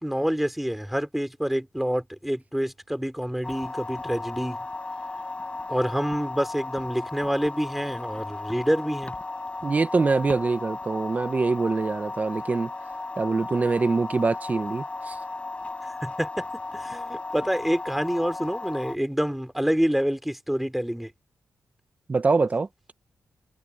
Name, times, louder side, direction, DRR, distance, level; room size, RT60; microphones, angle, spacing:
voice 1, 0.0-4.6 5.7-9.1 15.8-16.5 16.7-21.1, equal, ahead, 3.0 m, -27 dB
sound 1, 3.4-19.0, left 3 dB, 20° left, 4.6 m, -35 dB
voice 2, 9.6-12.7 13.2-15.2 22.1-22.7, right 4 dB, 30° right, 1.0 m, -24 dB
wide cardioid pair, 145°, 6 cm